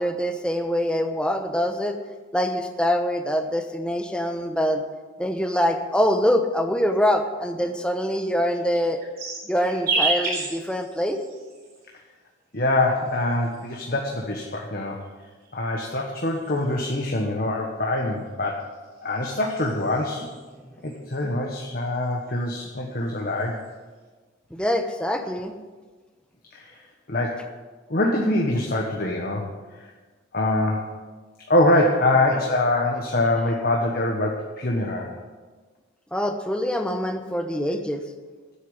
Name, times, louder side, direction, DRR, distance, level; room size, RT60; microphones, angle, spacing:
voice 1, 0.0-2.0 2.3-4.8 5.2-9.0 9.5-11.2 20.6-20.8 24.5-25.5 36.1-38.0, equal, 5° left, 6 dB, 0.9 m, -24 dB
sound 1, 8.4-11.9 12.8-14.2 15.0-16.9 18.3-20.4 20.8-21.3 21.6-22.7 23.0-23.7, right 3 dB, 45° right, 4.1 m, -32 dB
voice 2, 12.5-15.0 15.5-18.6 19.0-20.2 20.8-23.6 26.5-26.7 27.1-27.4 27.9-29.5 29.8-29.9 30.3-30.9 31.5-35.2, left 1 dB, 45° left, 0 dB, 1.3 m, -24 dB
10.0 x 8.4 x 9.6 m, 1.4 s
head